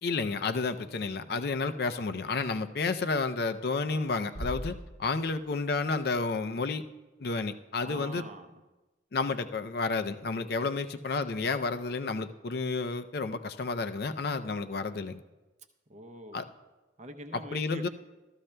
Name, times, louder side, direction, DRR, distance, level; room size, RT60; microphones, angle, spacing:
voice 1, 0.0-6.8 7.2-8.2 9.1-15.2 16.3-16.4 17.3-17.9, left 4 dB, 55° left, 10 dB, 0.4 m, -31 dB
Bass drum, 4.3-5.8, equal, 40° left, 0.8 m, -40 dB
voice 2, 7.8-8.6 10.6-10.8 15.9-16.5 17.0-17.9, right 1 dB, 40° right, 7 dB, 0.6 m, -45 dB
14.5 x 13.0 x 2.2 m, 1.1 s
head